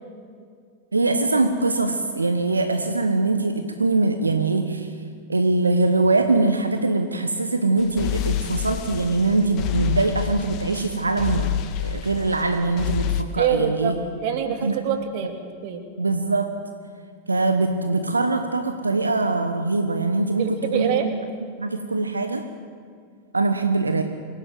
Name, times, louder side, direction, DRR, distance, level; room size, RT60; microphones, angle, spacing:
voice 1, 0.9-4.9 5.3-11.5 11.8-13.9 14.6-14.8 16.0-16.5 17.3-20.5 20.7-20.9 21.6-22.4 23.3-24.0, right 3 dB, 80° right, 7 dB, 1.4 m, -22 dB
sound 1, 7.8-13.2, left 10 dB, 40° left, 1.7 m, -28 dB
voice 2, 13.4-15.3 15.6-15.8 20.4-21.1, right 8 dB, 50° right, 6 dB, 2.8 m, -25 dB
26.0 x 17.0 x 7.9 m, 2.2 s
figure-of-eight pair, 90°, 0 cm